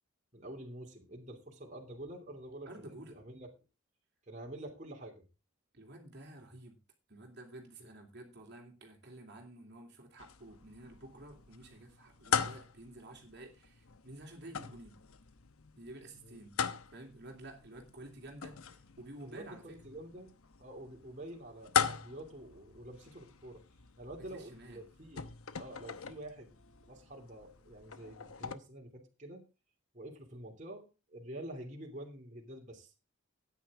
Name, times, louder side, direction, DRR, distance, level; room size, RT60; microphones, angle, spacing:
voice 1, 0.3-3.5 4.3-5.2 7.8-7.9 16.2-16.4 19.2-20.3 20.6-23.6 24.0-25.3 25.6-26.6 26.9-29.4 29.9-32.9, right 1 dB, 35° right, 3.0 m, -47 dB
voice 2, 2.7-3.2 5.7-6.8 7.1-15.0 15.8-16.5 16.9-19.8 24.2-24.8, right 1 dB, 50° right, 2.9 m, -51 dB
sound 1, 10.2-28.5, left 7 dB, 80° left, 1.0 m, -41 dB
14.0 x 9.7 x 3.7 m
head